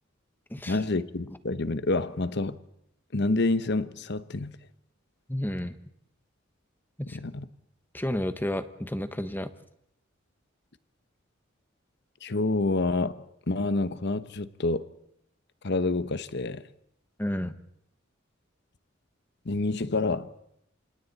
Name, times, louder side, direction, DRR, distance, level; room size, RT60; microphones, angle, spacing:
voice 1, 0.7-2.6 3.1-4.5 7.1-7.5 12.2-13.1 13.5-14.8 15.6-16.6 19.4-20.3, left 2 dB, 60° left, 1.0 m, -28 dB
voice 2, 5.3-5.8 7.0-7.2 7.9-9.5 17.2-17.6, left 1 dB, 10° left, 1.2 m, -31 dB
27.5 x 27.0 x 4.2 m
head